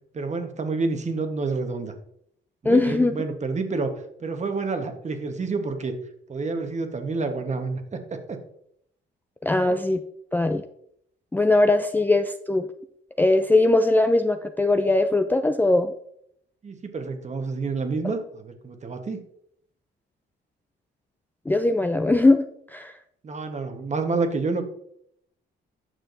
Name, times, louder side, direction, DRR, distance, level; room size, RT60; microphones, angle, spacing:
voice 1, 0.1-1.9 2.6-3.9 4.2-5.9 6.3-8.4 9.6-9.7 16.6-19.2 23.2-24.6, right 4 dB, 35° right, 6 dB, 1.2 m, -28 dB
voice 2, 2.6-3.2 9.4-10.0 10.3-10.6 11.3-12.7 13.2-15.9 21.5-22.5 22.7-22.9, left 2 dB, 10° left, 7 dB, 0.4 m, -20 dB
9.1 x 6.2 x 2.6 m, 0.70 s
cardioid pair, 90°, 20 cm